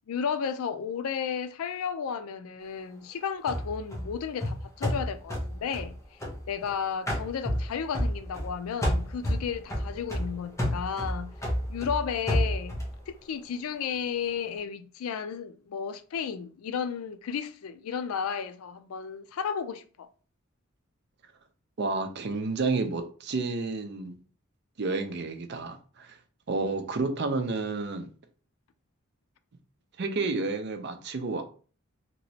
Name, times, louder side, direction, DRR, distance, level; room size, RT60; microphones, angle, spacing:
voice 1, 0.1-6.0 6.5-11.3 11.7-12.8 13.1-20.1, left 7 dB, 90° left, 0.4 m, -33 dB
sound 1, 3.5-6.7 7.1-8.5 8.8-13.0, equal, 15° left, 0.9 m, -30 dB
voice 2, 21.8-24.2 24.8-26.2 26.5-28.1 30.0-31.4, right 3 dB, 50° right, 0.5 m, -30 dB
3.0 x 2.8 x 2.7 m
head